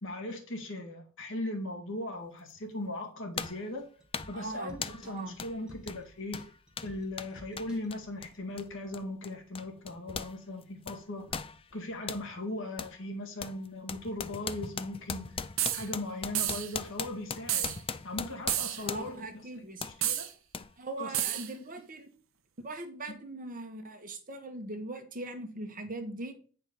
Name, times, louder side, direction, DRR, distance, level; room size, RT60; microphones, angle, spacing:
voice 1, 0.0-3.9 4.3-6.4 6.8-11.2 11.7-15.5 15.7-17.7 18.0-20.3 21.0-21.4, left 1 dB, 60° left, 3 dB, 1.9 m, -38 dB
sound 1, 2.5-2.6 3.4-3.7 4.1-4.4 4.8-5.1 5.4-5.6 5.8-10.4 10.6-12.3 12.8-13.0 13.4-19.3 19.8-20.0 20.5-20.7 21.2-21.3, left 6 dB, 25° left, 0.4 m, -39 dB
sound 2, 3.8-9.0 9.3-9.4, equal, 5° right, 1.7 m, -55 dB
voice 2, 4.3-4.8 5.0-5.4 18.8-19.9 20.8-22.1 22.6-26.3, right 2 dB, 40° right, 6 dB, 1.3 m, -40 dB
sound 3, 15.6-15.9 16.4-16.7 17.5-17.8 18.5-18.9 20.0-20.3 21.1-21.5, right 12 dB, 65° right, 0.9 m, -30 dB
9.0 x 4.5 x 5.4 m, 0.41 s
head